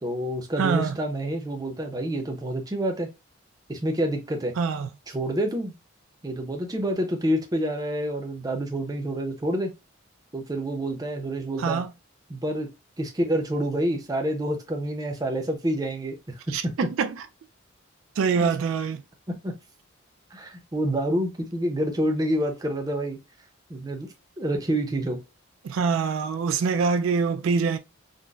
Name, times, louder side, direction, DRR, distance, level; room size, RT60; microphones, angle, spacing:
voice 1, 0.0-3.1 3.7-4.5 5.1-5.7 6.2-9.7 10.3-11.8 12.3-12.7 13.0-16.7 18.4-18.5 19.4-19.5 20.3-23.2 23.7-24.1 24.4-25.2, right 1 dB, 20° right, 0.5 m, -28 dB
voice 2, 0.6-0.9 4.6-4.9 11.6-11.9 16.5-17.2 18.2-19.0 25.6-27.8, right 5 dB, 70° right, 0.3 m, -24 dB
3.8 x 2.0 x 2.3 m
head